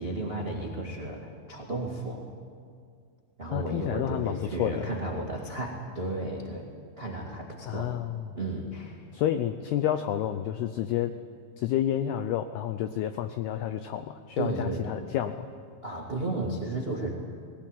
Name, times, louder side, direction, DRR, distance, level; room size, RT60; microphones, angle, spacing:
voice 1, 0.0-2.2 3.4-6.6 7.0-7.9 8.3-9.0 14.4-14.9 15.8-17.1, right 2 dB, 85° right, -1 dB, 0.5 m, -33 dB
voice 2, 3.5-4.9 7.7-8.3 9.1-11.1 11.6-15.5, left 11 dB, 90° left, 9 dB, 2.2 m, -30 dB
20.0 x 18.0 x 9.0 m, 2.2 s
omnidirectional pair, 5.4 m